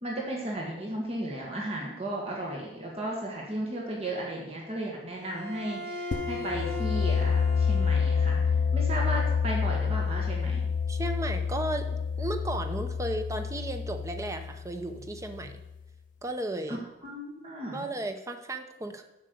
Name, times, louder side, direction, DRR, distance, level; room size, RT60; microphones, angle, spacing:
voice 1, 0.0-8.4 8.7-10.7 16.7-16.8 17.0-17.9, right 1 dB, 35° right, -2 dB, 1.6 m, -35 dB
Bowed string instrument, 5.2-8.6, left 2 dB, 75° right, 1.9 m, -39 dB
sound 1, 6.1-15.7, left 6 dB, 50° left, 0.4 m, -28 dB
voice 2, 10.9-11.9 12.2-15.6 16.2-16.8 17.7-19.0, right 1 dB, 20° right, 7 dB, 0.8 m, -34 dB
7.5 x 6.5 x 6.9 m, 0.95 s
head